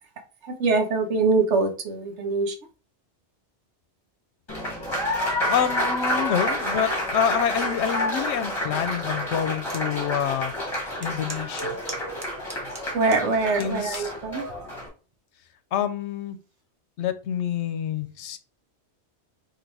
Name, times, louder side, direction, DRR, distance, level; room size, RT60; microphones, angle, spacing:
voice 1, 0.5-2.5 12.9-14.4, right 3 dB, 85° right, 6 dB, 1.1 m, -23 dB
Applause, 4.5-14.9, left 1 dB, 25° left, 1.6 m, -29 dB
voice 2, 5.5-10.5 11.0-11.8 13.6-14.1 15.7-16.4 17.0-18.4, left 8 dB, 80° left, 10 dB, 0.9 m, -27 dB
sound 1, 9.7-9.9 10.3-10.4 11.0-13.2 13.6-14.1 14.8-15.1, right 2 dB, 25° right, 0.8 m, -39 dB
3.9 x 2.8 x 4.6 m, 0.36 s
omnidirectional pair, 1.2 m